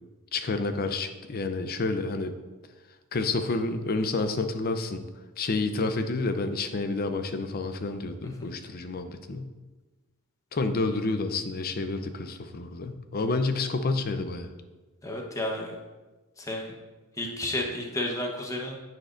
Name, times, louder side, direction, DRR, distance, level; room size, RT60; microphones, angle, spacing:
voice 1, 0.3-2.3 3.1-5.0 5.4-9.5 10.5-14.5, left 3 dB, 45° left, 8 dB, 0.6 m, -29 dB
voice 2, 15.0-15.7 16.4-16.7 17.2-18.8, left 1 dB, 15° left, 0 dB, 1.0 m, -32 dB
10.0 x 7.6 x 2.5 m, 1.2 s
head